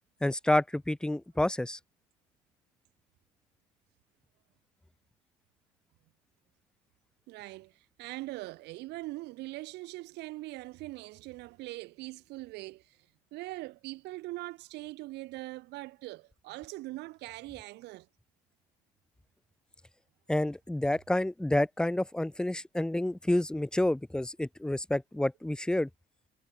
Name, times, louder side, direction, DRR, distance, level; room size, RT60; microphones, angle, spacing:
voice 1, 0.2-1.8 20.3-25.9, left 1 dB, 5° left, 0.6 m, -29 dB
voice 2, 7.3-13.0 13.3-18.1, right 19 dB, 85° right, 4.4 m, -42 dB
cardioid pair, 110°, 17 cm